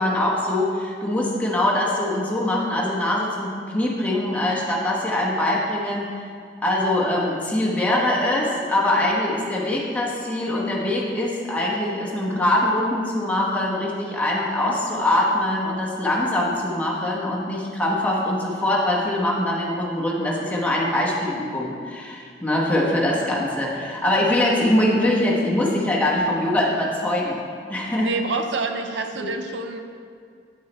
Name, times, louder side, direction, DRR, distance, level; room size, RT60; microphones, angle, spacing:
voice 1, 0.0-6.1 6.6-27.4 27.7-28.1 29.2-29.3, left 1 dB, 10° left, -4 dB, 1.0 m, -23 dB
voice 2, 28.0-29.8, right 3 dB, 70° right, 6 dB, 0.5 m, -27 dB
9.0 x 4.8 x 4.2 m, 2.1 s
head